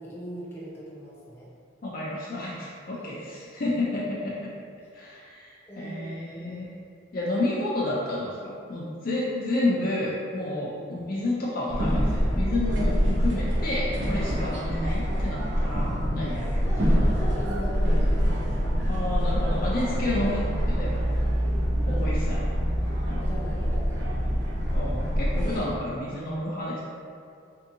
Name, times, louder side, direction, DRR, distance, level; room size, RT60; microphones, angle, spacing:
voice 1, 0.0-1.5 3.0-3.1 5.7-6.7 10.7-11.0 16.5-18.3 20.1-20.3 23.2-24.0, right 1 dB, 10° left, -9 dB, 0.7 m, -40 dB
voice 2, 1.8-4.5 4.9-6.7 7.1-17.0 18.8-20.4 20.7-20.9 21.8-22.4 24.7-26.8, left 2 dB, 45° left, -6 dB, 0.5 m, -30 dB
sound 1, 11.7-25.6, equal, 65° right, 0.6 m, -25 dB
3.5 x 2.7 x 2.6 m, 2.3 s
head